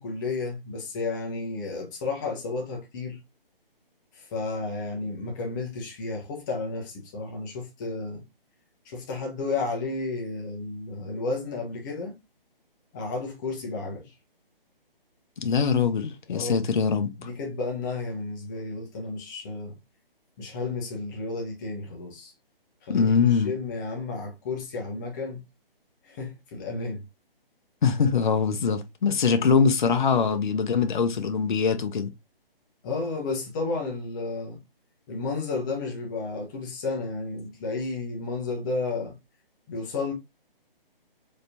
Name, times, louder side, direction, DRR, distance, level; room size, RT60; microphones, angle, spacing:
voice 1, 0.0-3.2 4.1-8.2 8.8-12.1 12.9-14.1 16.3-16.7 17.2-19.8 20.4-22.3 22.8-25.4 26.0-27.0 32.8-34.6 35.1-39.2 39.7-40.1, left 3 dB, 20° left, 1.1 m, -32 dB
voice 2, 15.4-17.3 22.9-23.5 27.8-32.1, left 6 dB, 55° left, 0.8 m, -23 dB
5.0 x 3.2 x 2.7 m
hypercardioid pair, 160°, 29 cm